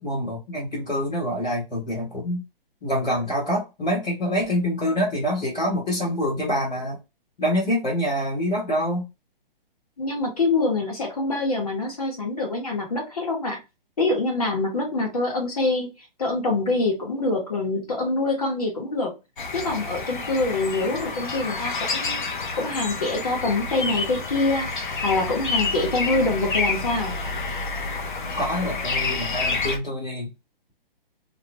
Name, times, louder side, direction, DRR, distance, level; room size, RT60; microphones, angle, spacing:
voice 1, 0.0-2.4 2.8-7.0 7.4-9.1 28.4-30.3, equal, 5° left, 0.6 m, -26 dB
voice 2, 10.0-13.6 14.0-15.9 16.2-19.1 19.5-22.2 22.5-27.2, left 2 dB, 40° left, 1.0 m, -25 dB
sound 1, 19.4-29.8, left 3 dB, 55° left, 0.6 m, -29 dB
2.5 x 2.1 x 2.8 m
hypercardioid pair, 180°, 29 cm